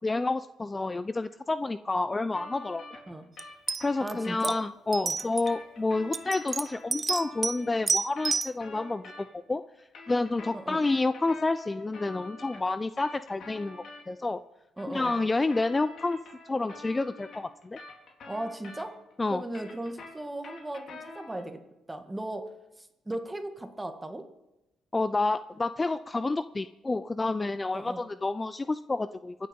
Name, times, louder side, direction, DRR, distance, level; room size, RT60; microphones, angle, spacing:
voice 1, 0.0-2.8 3.8-9.6 10.1-14.4 14.9-16.2 16.5-17.8 19.2-19.4 24.9-29.4, left 3 dB, 20° left, 13 dB, 0.5 m, -29 dB
sound 1, 2.3-4.4 5.2-9.5 9.8-14.0 14.8-19.1 19.4-21.5, left 3 dB, 60° left, 4.0 m, -47 dB
sound 2, 3.4-3.5 3.7-4.1 4.4-4.6 4.9-5.5 6.1-7.6 7.9-8.5, right 4 dB, 30° right, 0.6 m, -29 dB
voice 2, 4.0-4.6 5.0-5.2 10.5-10.8 14.8-15.2 18.3-19.0 19.3-21.6 21.9-22.5 22.8-24.3 27.7-28.0, right 1 dB, 15° right, 6 dB, 1.9 m, -37 dB
24.5 x 8.5 x 5.4 m, 0.95 s
cardioid pair, 90°, 0 cm